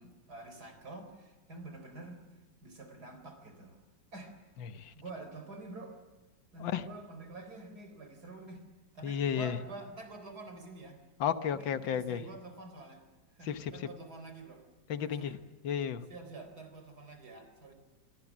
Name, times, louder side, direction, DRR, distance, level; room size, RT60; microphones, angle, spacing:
voice 1, 0.0-2.2 2.6-3.8 4.1-4.4 4.9-6.0 6.5-8.6 8.9-11.0 11.5-13.0 13.3-14.6 15.0-15.4 16.1-17.7, right 3 dB, 55° right, 7 dB, 4.6 m, -47 dB
voice 2, 4.6-4.9 6.6-6.9 9.0-9.6 11.2-12.2 13.4-13.9 14.9-15.4 15.6-16.0, left 8 dB, 90° left, 11 dB, 1.9 m, -33 dB
25.0 x 24.0 x 7.4 m, 1.2 s
omnidirectional pair, 2.0 m